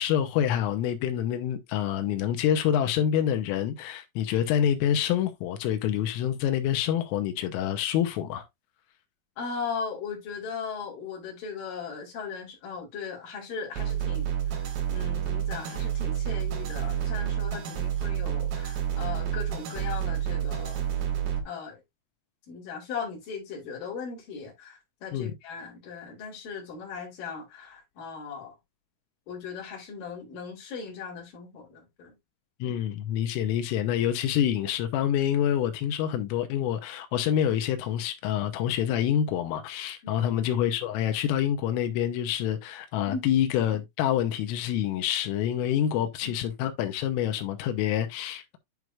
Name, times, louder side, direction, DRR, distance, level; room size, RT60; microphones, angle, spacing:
voice 1, 0.0-8.4 25.1-25.3 32.6-48.6, left 10 dB, 90° left, 3.5 m, -27 dB
voice 2, 9.4-14.3 14.5-20.9 21.4-21.8 22.5-28.5 29.3-32.1 40.0-40.3 43.1-43.2 45.9-46.4, left 5 dB, 45° left, 4.3 m, -38 dB
sound 1, 13.8-21.4, right 10 dB, 85° right, 4.8 m, -29 dB
11.0 x 4.7 x 2.5 m
omnidirectional pair, 5.7 m